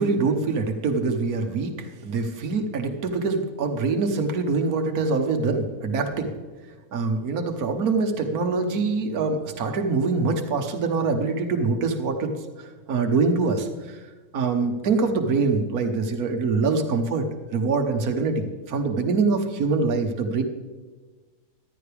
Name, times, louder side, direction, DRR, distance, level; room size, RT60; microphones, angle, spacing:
voice 1, 0.0-6.3 6.9-12.3 12.6-14.0 14.3-17.3 17.5-20.4, right 4 dB, 75° right, 4 dB, 1.6 m, -24 dB
14.5 x 12.0 x 3.4 m, 1.3 s
omnidirectional pair, 1.6 m